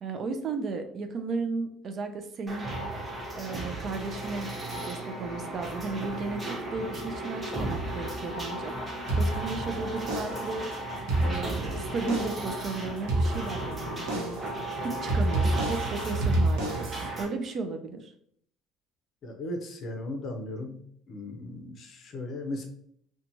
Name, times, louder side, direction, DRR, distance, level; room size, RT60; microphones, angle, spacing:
voice 1, 0.0-2.7 3.4-4.5 4.9-10.7 11.2-14.4 14.8-18.1, right 4 dB, 40° right, 6 dB, 0.4 m, -35 dB
sound 1, 2.5-17.2, right 2 dB, 15° right, 0.7 m, -35 dB
sound 2, 9.1-9.7 10.1-10.6 11.0-11.7 12.1-12.6 13.1-13.7 14.1-14.6 15.1-17.1, right 1 dB, 80° right, 0.8 m, -28 dB
voice 2, 19.2-20.8 21.1-22.7, left 2 dB, 45° left, 4 dB, 0.6 m, -36 dB
2.8 x 2.2 x 2.6 m, 0.66 s
cardioid pair, 130°, 0 cm